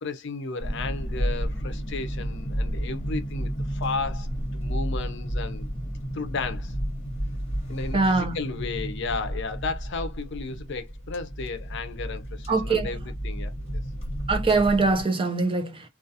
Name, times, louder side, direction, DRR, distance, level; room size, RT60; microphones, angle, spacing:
voice 1, 0.0-5.7 6.1-6.7 7.7-13.5, left 4 dB, 60° left, 0.5 m, -34 dB
sound 1, 0.6-15.0, equal, 35° left, 1.2 m, -32 dB
voice 2, 7.9-8.4 12.5-12.9 14.3-15.9, right 3 dB, 25° right, 0.5 m, -23 dB
2.3 x 2.3 x 2.7 m
head